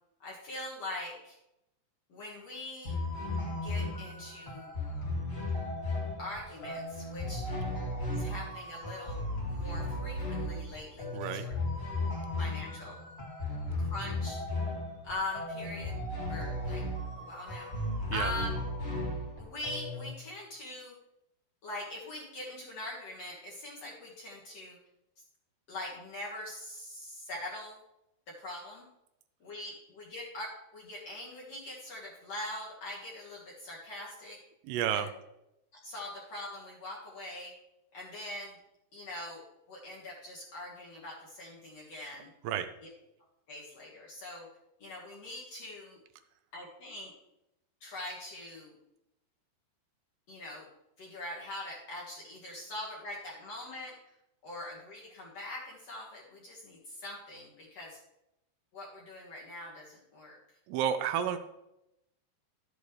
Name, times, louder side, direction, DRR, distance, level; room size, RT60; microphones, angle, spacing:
voice 1, 0.2-1.4 2.1-3.0 3.6-4.7 6.2-7.5 8.1-9.2 9.5-11.5 12.4-13.0 13.8-14.4 15.0-16.0 16.3-16.8 17.2-17.7 18.1-18.5 19.4-20.9 21.6-24.8 25.7-27.8 28.3-28.9 29.4-34.4 34.9-35.1 35.7-37.5 37.9-38.6 38.9-39.4 39.7-42.3 43.5-44.5 44.8-46.0 46.5-47.1 47.8-48.7 50.3-50.7 51.0-54.0 54.4-58.0 58.7-60.4, left 1 dB, 50° left, -4 dB, 2.0 m, -42 dB
sound 1, 2.8-20.1, left 1 dB, 35° left, 1.0 m, -35 dB
voice 2, 11.1-11.5 18.1-18.3 34.7-35.1 42.4-42.7 60.7-61.4, right 9 dB, 80° right, 8 dB, 2.6 m, -30 dB
12.0 x 8.3 x 3.2 m, 0.87 s
omnidirectional pair, 4.8 m